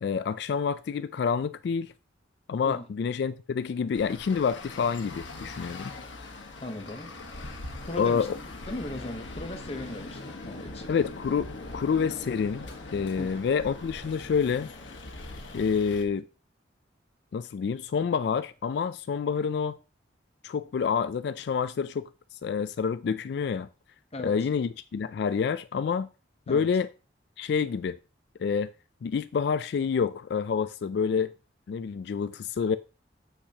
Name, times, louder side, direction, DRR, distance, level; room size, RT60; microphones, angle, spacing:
voice 1, 0.0-1.9 2.5-5.9 8.0-8.3 10.9-14.7 15.5-16.3 17.3-19.8 20.4-22.1 22.4-23.7 24.2-26.1 26.5-26.9 27.4-28.0 28.4-28.7 29.0-31.3 31.7-32.8, left 6 dB, 60° left, 0.3 m, -28 dB
Traffic noise roadway noise, 3.9-16.0, left 2 dB, 90° left, 1.3 m, -41 dB
voice 2, 6.6-7.1 7.8-10.9 13.2-13.5 24.1-24.5 26.5-26.7, left 1 dB, 35° left, 0.9 m, -38 dB
8.2 x 5.8 x 2.8 m
head